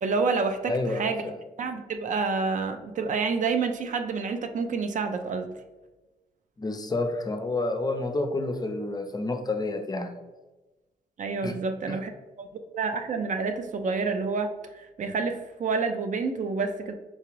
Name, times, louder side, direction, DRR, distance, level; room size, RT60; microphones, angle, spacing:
voice 1, 0.0-1.2 1.6-5.5 11.2-12.1 12.4-12.5 12.7-16.9, right 4 dB, 50° right, 7 dB, 0.4 m, -28 dB
voice 2, 0.7-1.3 6.6-10.1 11.4-11.6 11.9-12.0, left 2 dB, 25° left, 6 dB, 0.5 m, -29 dB
3.9 x 2.4 x 3.1 m, 1.1 s
supercardioid pair, 55°, 16 cm